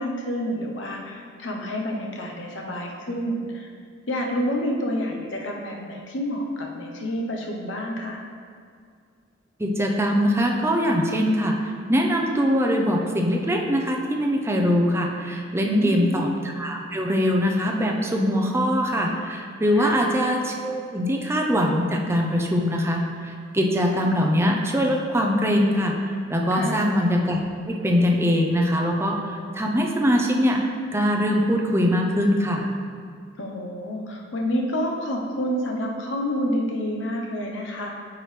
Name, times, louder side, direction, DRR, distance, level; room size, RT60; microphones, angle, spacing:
voice 1, 0.0-3.7 4.1-8.2 15.6-16.1 19.7-20.1 26.5-26.9 33.4-37.9, equal, 70° left, 0 dB, 0.9 m, -28 dB
voice 2, 9.6-11.6 11.9-16.3 16.6-27.4 27.7-30.6 30.9-32.7, equal, 15° right, 1 dB, 0.6 m, -22 dB
8.7 x 4.8 x 3.3 m, 2.2 s
head